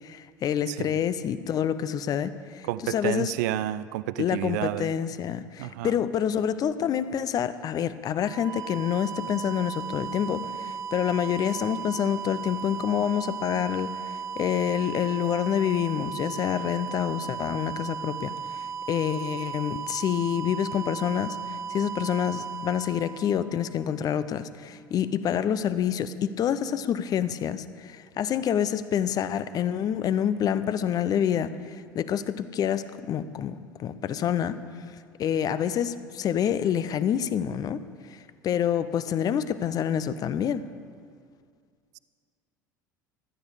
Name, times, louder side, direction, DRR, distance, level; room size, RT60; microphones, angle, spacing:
voice 1, 0.0-3.3 4.2-34.6 35.2-37.8 38.1-40.6, left 9 dB, 40° left, 14 dB, 0.7 m, -27 dB
voice 2, 0.7-1.0 2.7-4.9 5.6-6.0, right 14 dB, 65° right, 16 dB, 0.4 m, -30 dB
sound 1, 8.1-23.9, right 7 dB, 30° right, 0.7 m, -36 dB
16.0 x 12.0 x 5.0 m, 2.1 s
figure-of-eight pair, 70°, 10 cm